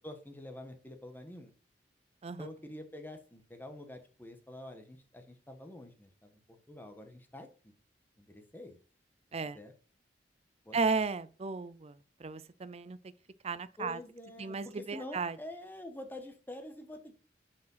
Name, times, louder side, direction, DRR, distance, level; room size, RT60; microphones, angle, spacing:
voice 1, 0.0-1.5 2.4-7.7 8.2-8.8 9.5-9.7 10.6-10.8 13.8-17.1, left 1 dB, 10° left, 1.3 m, -47 dB
voice 2, 10.7-11.9 12.2-13.0 13.4-14.0 14.4-15.4, right 4 dB, 35° right, 0.5 m, -34 dB
7.3 x 5.2 x 5.6 m
head